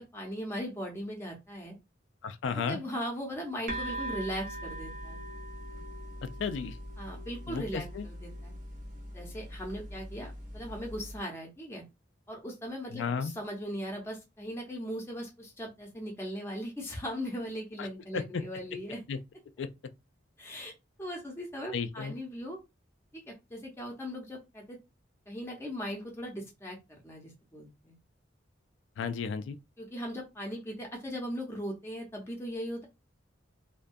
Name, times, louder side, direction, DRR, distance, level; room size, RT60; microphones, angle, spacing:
voice 1, 0.0-1.7 2.5-5.2 7.0-8.5 9.1-11.8 12.3-19.0 20.4-20.7 21.0-22.6 23.1-24.8 25.3-26.8 27.0-27.9 29.8-32.9, equal, 15° left, 0.6 m, -39 dB
voice 2, 2.2-2.8 6.4-6.8 7.5-8.1 12.9-13.3 17.8-17.9 18.1-18.4 19.1-19.2 19.6-19.7 21.7-22.1 29.0-29.6, left 5 dB, 70° left, 0.3 m, -33 dB
sound 1, 3.7-11.2, right 1 dB, 40° right, 0.6 m, -41 dB
2.2 x 2.1 x 2.5 m
head